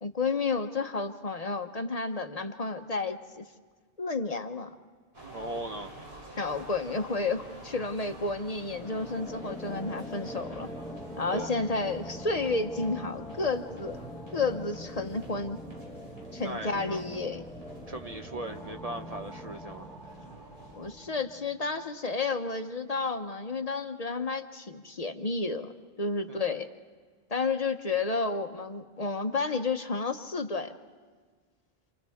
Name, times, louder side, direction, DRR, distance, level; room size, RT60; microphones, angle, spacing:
voice 1, 0.0-3.4 4.0-4.7 6.4-10.7 11.2-14.0 14.3-15.6 16.3-17.4 20.8-25.7 26.0-26.7 27.3-30.7, left 3 dB, 40° left, 6 dB, 0.8 m, -31 dB
sound 1, 5.1-20.9, right 2 dB, 75° right, 3.0 m, -49 dB
voice 2, 5.3-5.9 11.3-11.5 16.4-17.0 17.9-19.9 26.3-26.4, right 1 dB, 45° right, 5 dB, 0.7 m, -38 dB
sound 2, 8.6-21.7, left 1 dB, 5° left, 1.1 m, -43 dB
28.5 x 27.0 x 3.5 m, 1.5 s
omnidirectional pair, 1.1 m